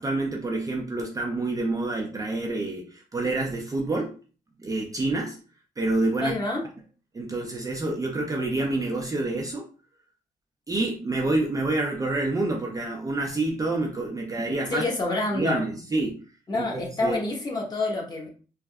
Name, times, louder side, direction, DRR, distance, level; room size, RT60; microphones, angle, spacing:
voice 1, 0.0-4.1 4.6-5.4 5.8-6.4 7.1-9.7 10.7-14.8 15.3-16.2 16.5-17.2, right 2 dB, 20° right, 0 dB, 0.5 m, -27 dB
voice 2, 6.2-6.6 14.7-15.6 16.5-18.3, left 2 dB, 25° left, -1 dB, 1.0 m, -27 dB
3.4 x 2.5 x 2.2 m, 0.38 s
cardioid pair, 115°, 16 cm